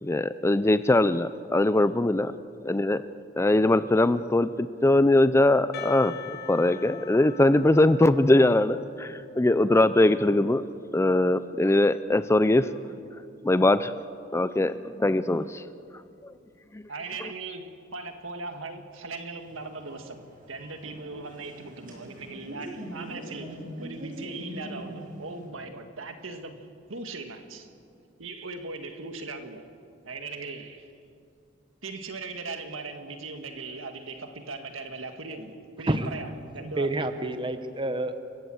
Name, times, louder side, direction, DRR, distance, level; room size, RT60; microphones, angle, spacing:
voice 1, 0.0-2.3 2.6-3.0 3.4-10.6 10.9-12.7 13.4-13.9 14.3-15.6 16.7-16.8, left 2 dB, 15° left, 0.4 m, -21 dB
Percussion, 5.7-9.6, left 8 dB, 55° left, 1.2 m, -43 dB
voice 2, 16.9-20.2 20.5-27.7 28.2-29.7 30.0-30.9 31.8-37.1, right 3 dB, 70° right, 1.8 m, -39 dB
sound 1, 19.4-25.5, right 1 dB, 45° right, 6.6 m, -42 dB
voice 3, 36.8-38.2, right 2 dB, 25° right, 0.9 m, -28 dB
28.5 x 15.0 x 7.8 m
head